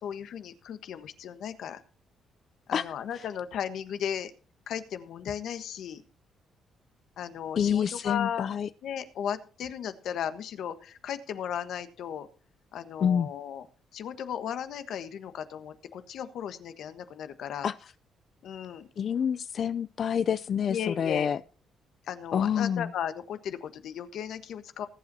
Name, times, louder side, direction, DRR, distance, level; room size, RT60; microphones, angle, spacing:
voice 1, 0.0-1.8 2.7-4.3 4.7-6.0 7.2-8.5 8.8-12.3 12.7-13.7 13.9-17.7 18.4-18.9 20.7-21.3 22.1-24.9, left 9 dB, 75° left, 10 dB, 1.3 m, -35 dB
voice 2, 7.6-8.7 13.0-13.3 17.6-17.7 19.0-21.4 22.3-22.9, left 8 dB, 55° left, 13 dB, 0.5 m, -27 dB
20.5 x 8.1 x 2.8 m, 0.38 s
cardioid pair, 90°, 0 cm